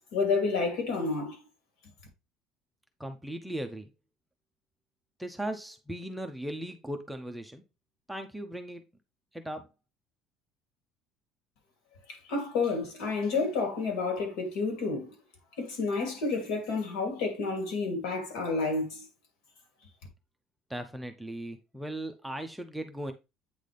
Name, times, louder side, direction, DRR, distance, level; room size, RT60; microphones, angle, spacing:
voice 1, 0.1-1.4 12.1-15.1 15.6-19.0, left 4 dB, 70° left, 2.8 m, -30 dB
voice 2, 3.0-3.9 5.2-7.6 8.1-8.8 9.3-9.7 20.7-23.1, right 1 dB, ahead, 0.5 m, -37 dB
8.3 x 4.0 x 3.3 m
cardioid pair, 175°, 0 cm